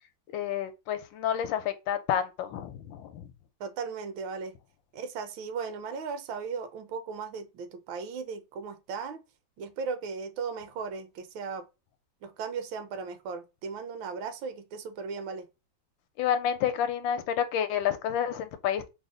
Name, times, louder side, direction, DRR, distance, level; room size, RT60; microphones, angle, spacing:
voice 1, 0.3-3.3 16.2-18.9, left 9 dB, 80° left, 1.3 m, -29 dB
voice 2, 3.6-4.6 4.9-9.2 9.6-11.7 12.2-15.5, right 5 dB, 85° right, 1.4 m, -37 dB
3.4 x 2.0 x 3.7 m
omnidirectional pair, 2.1 m